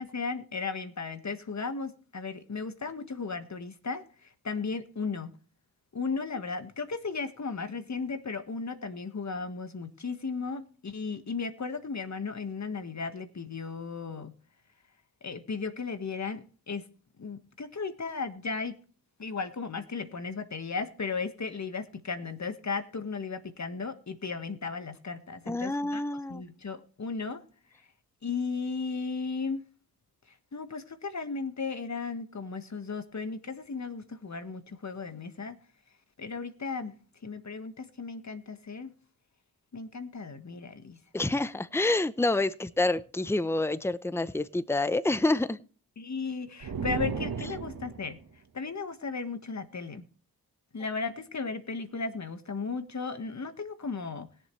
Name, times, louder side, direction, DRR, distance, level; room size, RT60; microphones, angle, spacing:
voice 1, 0.0-5.3 5.9-14.3 15.2-16.8 17.2-18.8 19.2-27.4 28.2-29.6 30.5-35.6 36.2-36.9 37.2-38.9 39.7-41.0 46.0-48.2 48.5-50.0 50.7-54.3, left 4 dB, 45° left, 1.7 m, -35 dB
voice 2, 25.5-26.4 41.1-45.6, left 2 dB, 5° left, 0.8 m, -28 dB
sound 1, 46.6-48.2, right 5 dB, 65° right, 1.6 m, -34 dB
20.5 x 7.5 x 3.3 m
supercardioid pair, 40°, 38 cm